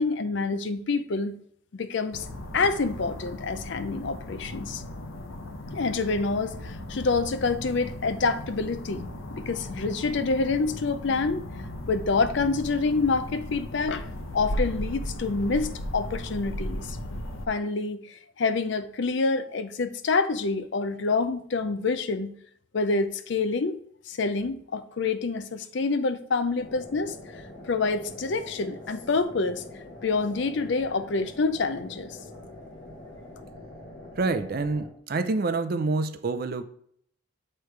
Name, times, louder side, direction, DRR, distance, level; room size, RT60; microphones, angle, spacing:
voice 1, 0.0-1.4 1.7-2.3 2.5-4.8 5.7-11.4 11.9-14.1 14.3-17.0 17.5-18.0 18.4-22.3 22.7-23.8 24.1-27.1 27.7-29.6 30.0-32.2, left 4 dB, 60° left, 11 dB, 0.5 m, -27 dB
sound 1, 2.1-17.5, left 1 dB, 75° left, 0.8 m, -36 dB
sound 2, 26.6-34.9, left 1 dB, 25° left, 1.2 m, -44 dB
voice 2, 34.2-36.6, right 3 dB, 45° right, 11 dB, 0.4 m, -27 dB
8.5 x 3.3 x 4.5 m, 0.65 s
head